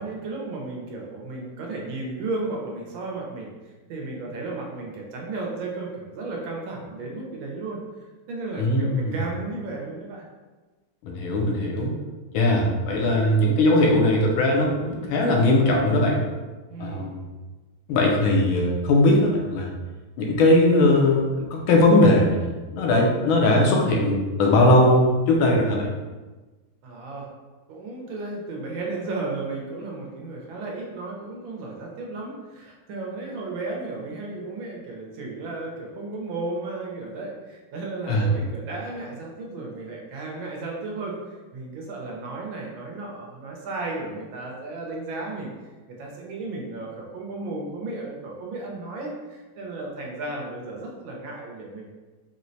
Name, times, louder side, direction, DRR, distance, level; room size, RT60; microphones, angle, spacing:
voice 1, 0.0-3.5 3.9-10.2 16.7-17.1 23.2-23.3 26.8-27.3 27.7-45.5 45.9-51.9, right 3 dB, 80° right, -1 dB, 1.4 m, -34 dB
voice 2, 8.6-9.2 11.0-11.9 12.3-16.2 16.8-17.2 17.9-19.7 20.2-25.9 38.1-38.3, left 1 dB, 80° left, -1 dB, 1.4 m, -20 dB
4.3 x 2.1 x 2.6 m, 1.2 s
omnidirectional pair, 2.3 m